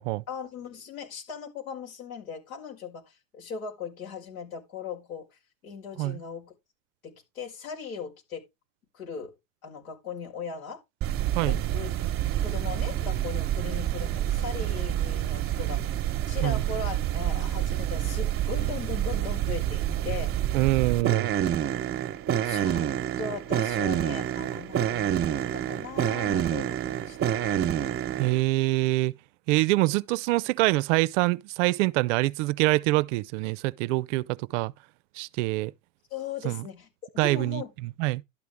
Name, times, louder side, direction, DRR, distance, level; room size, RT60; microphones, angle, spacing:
voice 1, 0.3-5.3 5.6-6.5 7.0-8.4 8.9-9.3 9.6-10.8 11.5-11.9 12.4-15.9 16.3-20.3 22.4-22.9 23.2-27.6 29.9-30.0 36.1-36.9 37.2-37.7, left 6 dB, 85° left, 5.2 m, -38 dB
tv channel noise, 11.0-28.4, right 11 dB, 35° right, 1.1 m, -28 dB
voice 2, 20.5-21.3 28.2-29.1 29.5-34.7 35.1-35.7 36.4-36.7 37.2-38.2, right 20 dB, 60° right, 0.6 m, -25 dB
12.0 x 9.2 x 3.6 m
hypercardioid pair, 95°, 40 cm